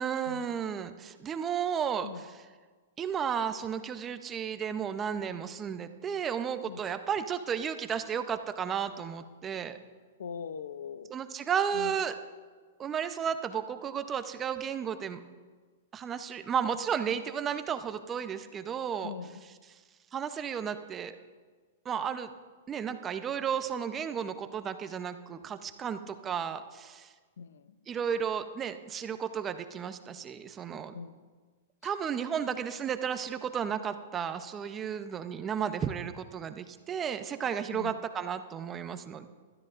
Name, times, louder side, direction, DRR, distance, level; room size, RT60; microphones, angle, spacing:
voice 1, 0.0-2.3 3.0-9.8 11.1-12.1 12.8-15.2 15.9-19.1 20.1-21.1 21.8-22.3 22.7-27.1 27.9-30.9 31.8-39.3, right 7 dB, 20° right, 9 dB, 0.7 m, -33 dB
voice 2, 10.2-11.2 11.7-11.9 19.0-19.4 27.4-27.7 30.9-31.2 37.7-38.0, left 7 dB, 80° left, 13 dB, 0.6 m, -41 dB
21.0 x 13.0 x 2.6 m, 1.4 s
hypercardioid pair, 135°, 0 cm